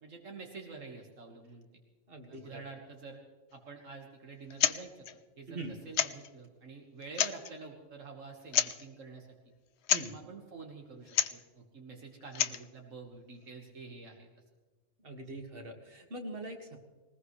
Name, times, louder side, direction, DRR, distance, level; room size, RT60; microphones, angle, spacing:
voice 1, 0.0-1.7 2.3-3.2 3.5-5.1 5.4-9.3 10.0-14.3, right 4 dB, 85° right, 1 dB, 2.0 m, -48 dB
voice 2, 2.1-2.6 5.5-5.8 9.9-10.1 15.0-16.8, right 2 dB, 50° right, 3 dB, 2.2 m, -43 dB
sound 1, 4.5-4.8 5.0-5.1 5.9-6.3 7.0-7.5 8.5-8.8 9.8-10.1 11.1-11.4 12.2-12.7, left 9 dB, 65° left, 0.9 m, -29 dB
20.0 x 20.0 x 3.2 m, 1.3 s
omnidirectional pair, 1.3 m